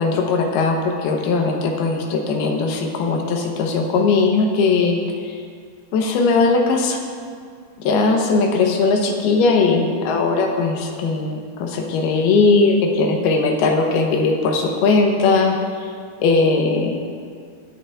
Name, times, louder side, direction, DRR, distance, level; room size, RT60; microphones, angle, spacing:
voice 1, 0.0-5.0 5.9-7.0 7.8-15.6 16.2-17.0, left 4 dB, 90° left, 2 dB, 2.9 m, -19 dB
22.0 x 7.7 x 2.4 m, 2.1 s
omnidirectional pair, 4.4 m